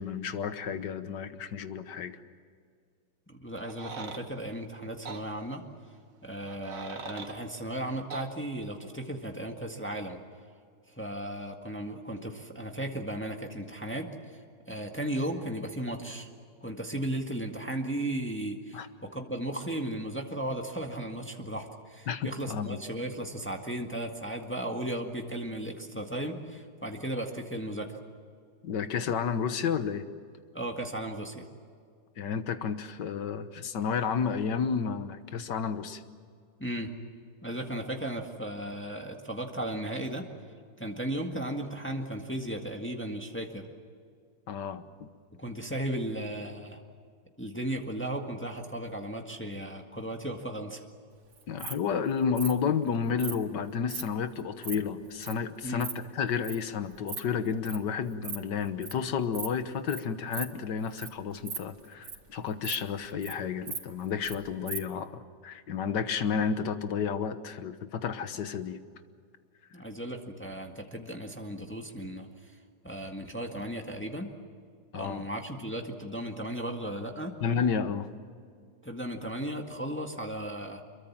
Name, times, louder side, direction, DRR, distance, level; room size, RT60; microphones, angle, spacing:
voice 1, 0.0-2.2 18.7-18.9 22.1-22.8 28.6-30.0 32.2-36.0 44.5-45.1 51.5-68.8 74.9-75.2 77.4-78.1, left 6 dB, 75° left, 10 dB, 1.8 m, -31 dB
voice 2, 3.3-5.6 6.2-10.2 10.9-14.1 14.7-16.3 16.6-27.9 30.5-31.4 36.6-36.9 37.4-40.3 40.8-43.7 45.4-46.8 47.4-50.8 55.6-55.9 69.7-72.3 72.8-74.3 74.9-77.3 78.8-80.8, right 1 dB, 5° left, 2 dB, 1.7 m, -35 dB
sound 1, 3.6-4.2 5.0-5.2 6.4-7.4 8.1-8.3, right 5 dB, 50° right, 1.9 m, -41 dB
Insect, 51.3-51.7 52.4-52.5 53.2-53.4 53.8-54.0 54.4-54.8 55.2-55.3 55.6-55.9 56.4-56.6 56.9-57.2 57.5-57.8 58.1-58.4 58.6-58.9 59.3-59.5 59.9-60.0 60.3-60.5 60.8-61.1 61.4-62.3 62.6-62.8 63.1-63.3 63.7-64.4 64.7-64.8, right 5 dB, 70° right, 2.8 m, -37 dB
26.0 x 23.0 x 7.5 m, 2.2 s
omnidirectional pair, 1.9 m